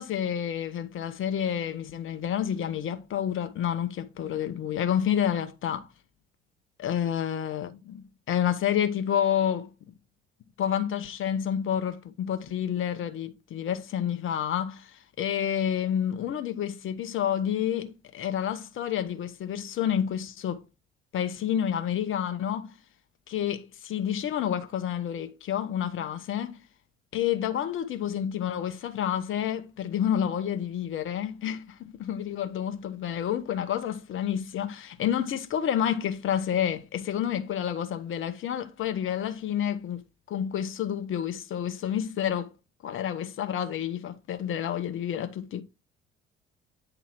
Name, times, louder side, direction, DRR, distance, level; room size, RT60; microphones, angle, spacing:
voice 1, 0.0-5.9 6.8-9.7 10.6-20.6 21.1-22.7 23.3-26.6 27.1-40.0 40.3-42.5 42.8-45.6, left 9 dB, 45° left, 0.9 m, -29 dB
8.6 x 3.0 x 4.5 m
figure-of-eight pair, 55°, 30 cm